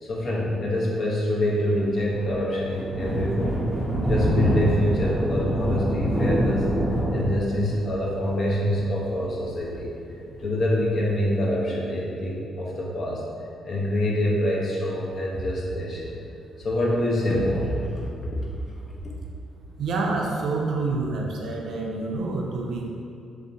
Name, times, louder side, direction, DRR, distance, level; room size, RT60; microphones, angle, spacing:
voice 1, 0.0-3.6 4.0-6.7 7.1-9.9 10.4-13.2 13.6-16.2 16.6-18.4, left 1 dB, 55° left, -4 dB, 0.5 m, -26 dB
Thunder, 1.7-10.8, equal, 5° right, 0.5 m, -26 dB
voice 2, 19.8-22.9, right 3 dB, 70° right, -1 dB, 0.4 m, -27 dB
2.7 x 2.1 x 2.5 m, 2.5 s
cardioid pair, 90°, 0 cm